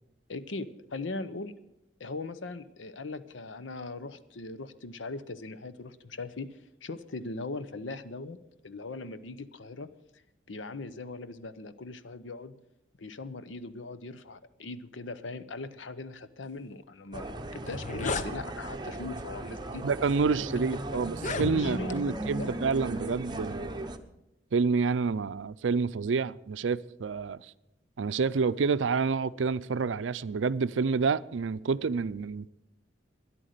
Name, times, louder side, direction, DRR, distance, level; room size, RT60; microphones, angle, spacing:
voice 1, 0.3-1.5 2.0-8.4 8.6-9.9 10.5-12.5 13.0-19.9 20.3-20.4 21.4-22.5, left 3 dB, 90° left, 0.8 m, -40 dB
sound 1, 17.1-24.0, right 1 dB, 25° right, 0.9 m, -37 dB
sound 2, 17.2-17.3 17.6-18.3 19.2-19.4 20.1-20.2 21.1-22.0, left 3 dB, 40° left, 0.7 m, -34 dB
voice 2, 19.8-23.7 24.5-27.5 28.0-32.5, right 5 dB, 85° right, 0.5 m, -28 dB
13.0 x 10.5 x 6.6 m
head